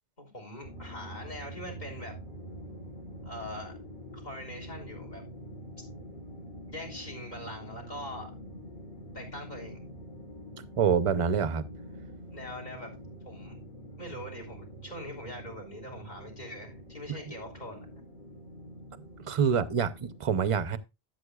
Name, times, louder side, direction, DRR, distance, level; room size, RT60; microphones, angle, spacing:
voice 1, 0.2-2.2 3.2-3.8 4.1-5.2 6.7-8.3 9.1-9.8 12.3-13.0 13.2-13.6 14.0-17.9, left 1 dB, 45° left, 3.5 m, -42 dB
sound 1, 0.6-20.2, equal, 60° left, 3.4 m, -45 dB
voice 2, 10.8-11.6 17.3-17.4 19.3-20.8, right 7 dB, 35° right, 0.6 m, -26 dB
13.0 x 7.8 x 2.3 m
omnidirectional pair, 1.1 m